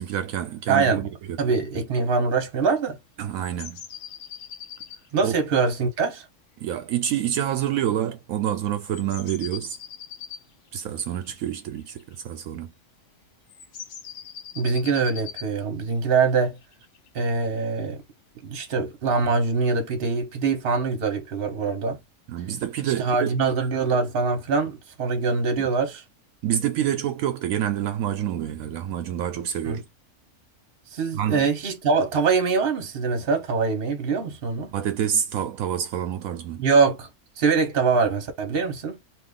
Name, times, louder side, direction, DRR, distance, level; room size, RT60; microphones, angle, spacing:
voice 1, 0.0-1.4 3.2-3.8 5.2-5.3 6.6-9.8 10.7-12.7 22.3-23.4 26.4-29.8 31.2-31.5 34.7-36.6, right 10 dB, 75° right, 1.0 m, -27 dB
voice 2, 0.7-1.0 1.4-3.0 5.1-6.3 14.5-16.6 17.1-18.0 18.4-22.0 22.8-26.0 29.6-29.8 30.9-34.7 36.6-37.1 37.4-39.0, right 4 dB, 45° right, 1.0 m, -23 dB
sound 1, 3.3-5.4 8.9-12.1 13.5-15.5 16.5-17.6 18.7-18.8, left 8 dB, 65° left, 0.9 m, -41 dB
2.7 x 2.5 x 3.6 m
omnidirectional pair, 1.5 m